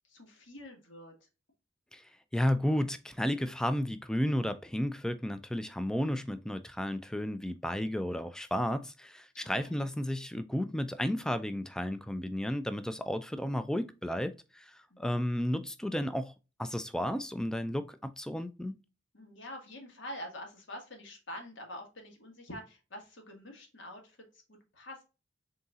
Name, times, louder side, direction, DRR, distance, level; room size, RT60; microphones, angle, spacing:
voice 1, 0.0-1.1 9.4-9.9 14.9-15.2 19.1-25.0, left 1 dB, 75° left, 1.4 m, -46 dB
voice 2, 1.9-16.3 16.6-18.7, equal, 5° left, 0.3 m, -33 dB
4.0 x 3.9 x 2.4 m
head